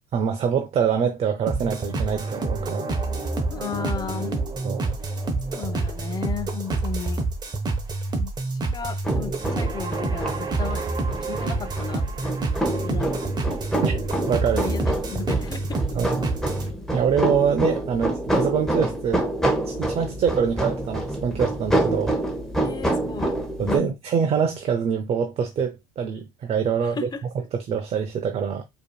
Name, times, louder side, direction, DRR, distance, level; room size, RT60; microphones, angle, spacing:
voice 1, 0.1-2.9 4.6-5.0 13.8-13.9 14.3-14.6 15.9-16.3 16.9-19.2 19.7-22.2 23.6-27.1 27.5-28.6, right 7 dB, 50° right, 0.6 m, -24 dB
sound 1, 1.5-16.7, right 3 dB, 30° right, 1.0 m, -27 dB
voice 2, 3.5-4.4 5.5-7.2 8.2-10.9 11.2-12.4 12.8-13.3 14.5-16.0 22.6-23.3 23.6-24.0 26.8-27.2, left 6 dB, 30° left, 0.7 m, -35 dB
sound 2, 9.0-23.8, right 1 dB, 5° left, 1.2 m, -27 dB
4.8 x 2.9 x 2.2 m
supercardioid pair, 85°, 14 cm